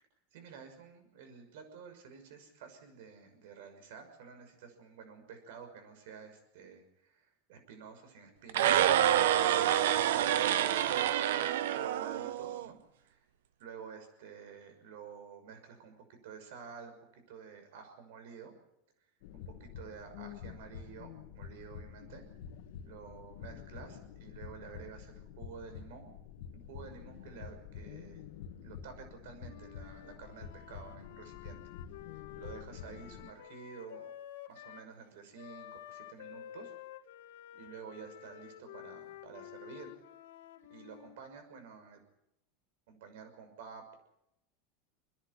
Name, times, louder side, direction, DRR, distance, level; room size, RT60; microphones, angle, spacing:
voice 1, 0.3-8.8 9.4-13.3 13.6-18.5 19.0-22.2 22.8-26.1 26.5-28.3 28.6-31.6 32.1-34.1 34.5-36.7 37.5-39.9 40.7-42.0 42.9-43.9, right 6 dB, 70° right, 6 dB, 6.2 m, -50 dB
sound 1, 8.5-12.7, right 11 dB, 85° right, 1.1 m, -27 dB
sound 2, 19.2-33.3, left 8 dB, 70° left, 2.2 m, -48 dB
Wind instrument woodwind instrument, 29.4-34.9 35.4-41.2, left 12 dB, 85° left, 2.6 m, -51 dB
29.0 x 10.5 x 9.9 m, 0.83 s
supercardioid pair, 155°, 0 cm